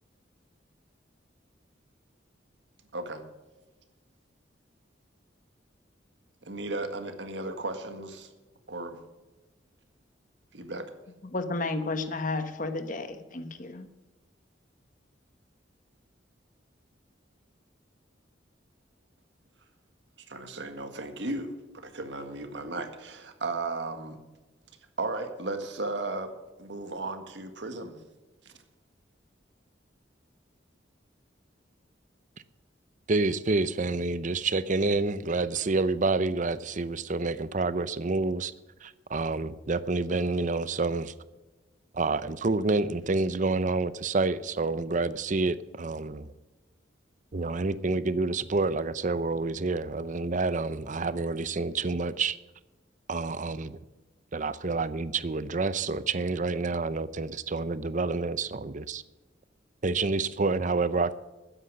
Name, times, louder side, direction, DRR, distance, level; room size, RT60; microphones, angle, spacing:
voice 1, 2.9-3.2 6.4-8.3 8.7-9.0 10.5-10.9 20.3-24.2 25.0-26.3 26.6-28.0 28.4-28.5, right 2 dB, 70° right, 1.8 m, -35 dB
voice 2, 11.3-13.9, left 3 dB, 45° left, 1.2 m, -32 dB
voice 3, 33.1-38.5 38.8-41.1 41.9-46.3 47.3-52.4 53.1-53.8 54.3-59.0 59.8-61.1, right 3 dB, 45° right, 0.6 m, -28 dB
13.0 x 9.9 x 6.3 m
head